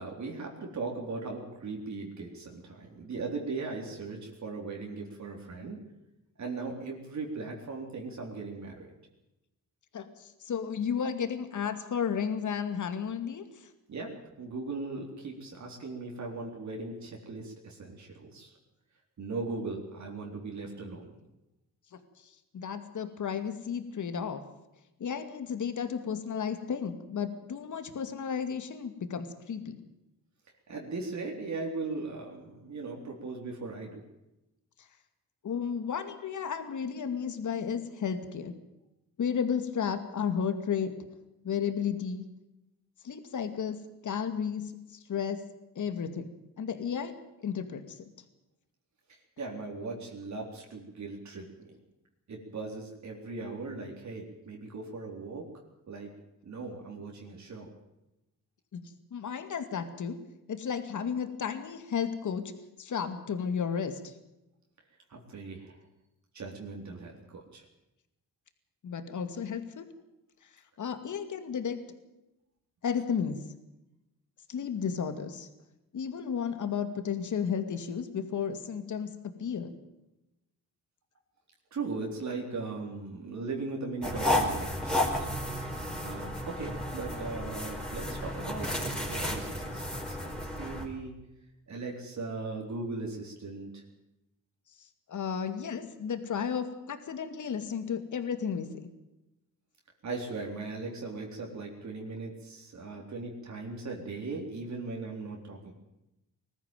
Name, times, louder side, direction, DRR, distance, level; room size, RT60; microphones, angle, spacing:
voice 1, 0.0-5.8 6.4-8.9 13.9-18.5 19.2-21.1 30.7-34.0 49.1-51.7 52.3-55.5 55.9-56.1 56.4-57.7 65.1-65.8 66.3-67.6 81.7-85.3 86.0-91.2 91.7-93.8 100.0-105.7, right 3 dB, 55° right, 0 dB, 3.9 m, -38 dB
voice 2, 9.9-13.7 22.5-24.4 25.0-29.8 35.4-38.5 39.2-40.9 41.4-42.2 43.0-45.4 45.8-46.3 46.6-47.1 47.4-48.0 58.7-58.8 59.1-60.2 60.5-62.5 62.8-64.1 68.8-69.9 70.8-71.8 72.8-73.4 74.5-75.5 75.9-79.1 79.4-79.7 95.1-98.7, left 7 dB, 60° left, 9 dB, 2.3 m, -33 dB
sound 1, 84.0-90.9, left 1 dB, ahead, 5.3 m, -32 dB
20.5 x 14.5 x 9.2 m, 0.94 s
cardioid pair, 80°, 34 cm